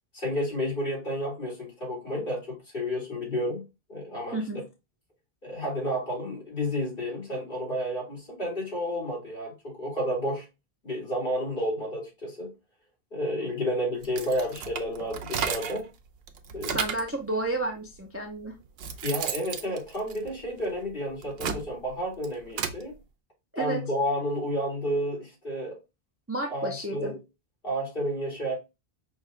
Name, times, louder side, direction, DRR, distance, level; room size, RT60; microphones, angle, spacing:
voice 1, 0.1-3.6 3.9-4.4 5.4-10.5 10.8-12.5 13.1-15.9 16.5-16.8 19.0-22.9 23.5-25.8 26.5-27.2 27.6-28.5, equal, 55° left, 2.7 m, -31 dB
sound 1, 14.0-15.9 16.3-17.2 18.0-18.1 18.5-20.7 21.1-22.8, right 7 dB, 70° right, 0.8 m, -34 dB
voice 2, 16.7-18.5 23.5-23.8 26.3-27.1, right 2 dB, 20° right, 0.5 m, -31 dB
5.2 x 2.4 x 3.2 m
omnidirectional pair, 1.1 m